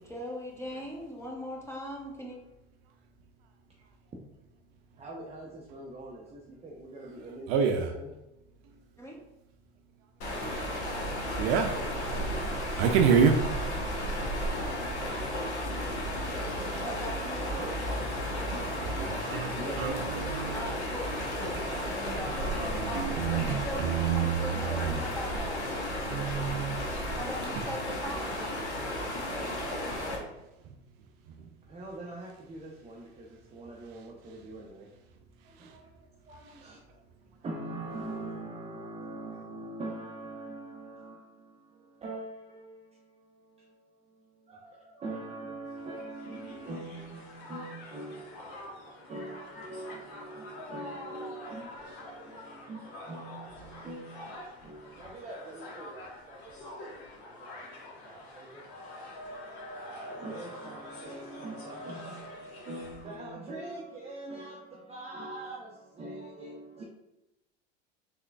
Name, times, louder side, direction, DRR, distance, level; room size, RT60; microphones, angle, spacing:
voice 1, 0.0-2.4 9.0-9.2 16.8-17.6 20.5-25.7 27.1-28.4, equal, 10° left, 1.0 m, -40 dB
voice 2, 5.0-8.1 16.2-16.8 17.6-17.8 19.6-21.2 29.2-30.3 31.7-34.9 35.4-35.9 36.3-36.8 37.4-58.6 59.7-66.8, right 2 dB, 20° right, 0.6 m, -43 dB
voice 3, 7.5-7.9 11.4-11.7 12.1-13.4 18.8-19.5 19.8-19.9 20.2-20.6 22.3-25.0 26.0-26.8, right 7 dB, 60° right, 0.5 m, -28 dB
sound 1, 10.2-30.2, equal, 85° left, 1.0 m, -33 dB
Crowd, 45.8-63.1, left 1 dB, 60° left, 1.1 m, -46 dB
3.6 x 3.4 x 2.3 m
hypercardioid pair, 85°, 33 cm